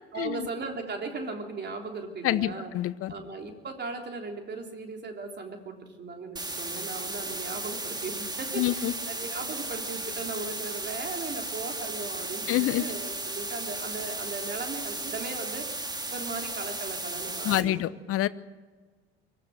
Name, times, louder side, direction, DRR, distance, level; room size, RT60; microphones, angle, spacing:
voice 1, 0.1-2.7 3.1-15.7 16.1-17.7, right 4 dB, 30° right, 3 dB, 3.5 m, -37 dB
voice 2, 2.2-3.1 8.5-8.9 12.5-12.8 17.4-18.3, left 14 dB, 45° left, 18 dB, 0.9 m, -27 dB
sound 1, 6.4-17.6, right 2 dB, 10° right, 2.0 m, -35 dB
24.0 x 16.0 x 8.0 m, 1.4 s
figure-of-eight pair, 60°, 33 cm